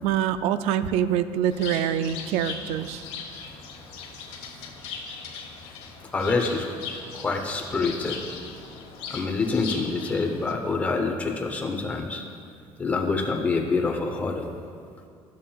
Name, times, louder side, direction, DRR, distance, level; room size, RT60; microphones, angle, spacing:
voice 1, 0.0-3.0, right 9 dB, 80° right, 13 dB, 0.4 m, -25 dB
Bird, 1.5-10.5, left 5 dB, 75° left, 1.1 m, -39 dB
voice 2, 6.1-6.7 7.1-8.2 9.1-12.2 12.8-14.5, left 3 dB, 15° left, 1 dB, 0.7 m, -26 dB
13.0 x 7.3 x 2.3 m, 2.3 s
cardioid pair, 165°, 11 cm